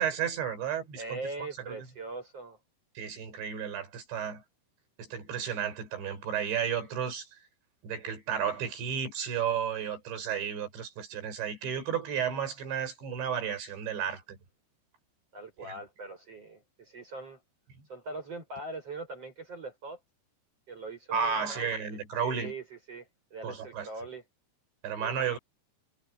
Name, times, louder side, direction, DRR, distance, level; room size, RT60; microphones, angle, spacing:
voice 1, 0.0-1.2 1.7-1.8 3.0-4.4 5.0-7.4 7.8-14.4 15.6-15.7 21.1-22.5 23.4-23.9 24.8-25.4, right 7 dB, 80° right, 7.5 m, -33 dB
voice 2, 1.0-2.6 15.3-17.4 17.9-20.0 20.7-24.2 25.0-25.4, right 3 dB, 35° right, 7.5 m, -42 dB
omnidirectional pair, 5.2 m